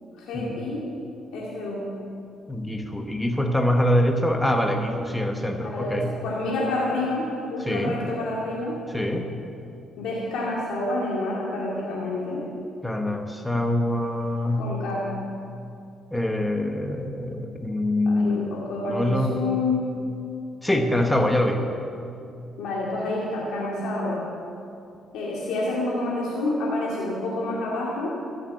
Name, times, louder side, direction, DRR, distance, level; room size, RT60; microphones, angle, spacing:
voice 1, 0.1-0.9 1.3-1.9 5.6-8.8 10.0-12.4 14.6-15.1 18.1-19.9 22.6-24.3 25.1-28.1, left 2 dB, 85° left, -5 dB, 2.2 m, -28 dB
voice 2, 2.5-6.2 7.6-8.0 8.9-9.3 12.8-14.7 16.1-19.4 20.6-21.7, left 1 dB, 5° left, 4 dB, 1.2 m, -24 dB
14.0 x 6.8 x 7.9 m, 2.5 s
cardioid pair, 90°, 0 cm